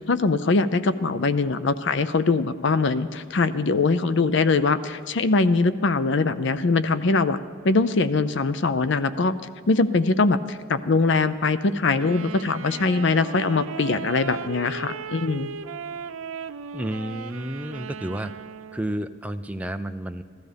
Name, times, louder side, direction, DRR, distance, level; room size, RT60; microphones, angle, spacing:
voice 1, 0.1-7.4 7.6-9.3 9.7-15.5, left 3 dB, 55° left, 13 dB, 0.5 m, -22 dB
Wind instrument woodwind instrument, 12.0-19.1, right 6 dB, 75° right, 0.5 m, -37 dB
voice 2, 16.7-18.3 18.7-20.2, right 1 dB, 5° right, 8 dB, 0.4 m, -31 dB
15.0 x 13.0 x 5.2 m, 2.1 s
head